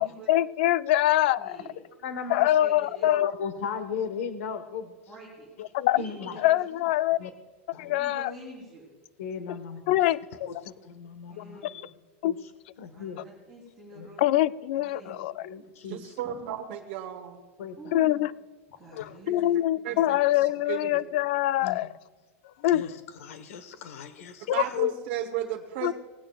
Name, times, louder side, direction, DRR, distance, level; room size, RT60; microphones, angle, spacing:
voice 1, 0.3-1.6 2.3-3.3 5.6-6.0 6.4-7.2 7.8-8.3 9.9-10.5 11.4-11.8 12.2-12.3 14.2-15.5 17.9-18.3 18.9-21.9 22.6-22.8 24.5-24.9 25.8-25.9, left 14 dB, 45° left, 16 dB, 0.4 m, -24 dB
voice 2, 1.4-1.7 2.3-3.1 5.1-5.5 5.9-6.8 8.0-8.8 11.3-11.9 12.9-14.2 14.7-15.2 16.2-16.5 17.8-18.3 18.8-19.5 19.9-20.2 20.8-21.0, right 1 dB, ahead, -8 dB, 3.3 m, -47 dB
voice 3, 2.0-2.5 3.0-4.9 6.0-6.4 7.2-7.3 7.7-8.0 9.2-9.9 10.5-11.6 12.2-12.4 12.8-13.2 13.9-14.1 15.1-15.2 15.4-16.1 17.6-18.0 19.0-19.1 21.6-21.8 22.6-24.8, left 6 dB, 80° left, 9 dB, 1.1 m, -37 dB
voice 4, 15.9-17.4 19.8-20.0 20.7-20.9 24.5-25.9, right 11 dB, 45° right, 3 dB, 1.0 m, -33 dB
19.5 x 15.5 x 2.3 m, 1.3 s
supercardioid pair, 180°, 7 cm